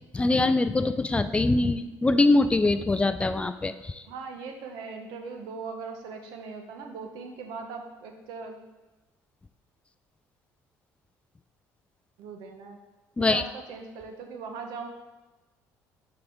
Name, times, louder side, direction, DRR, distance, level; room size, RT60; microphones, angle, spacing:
voice 1, 0.1-4.0 13.2-13.4, left 2 dB, 15° left, 11 dB, 0.3 m, -23 dB
voice 2, 4.0-8.7 12.2-12.8 13.3-14.9, right 4 dB, 90° right, 4 dB, 1.0 m, -40 dB
7.8 x 4.9 x 3.6 m, 1.2 s
cardioid pair, 110°, 7 cm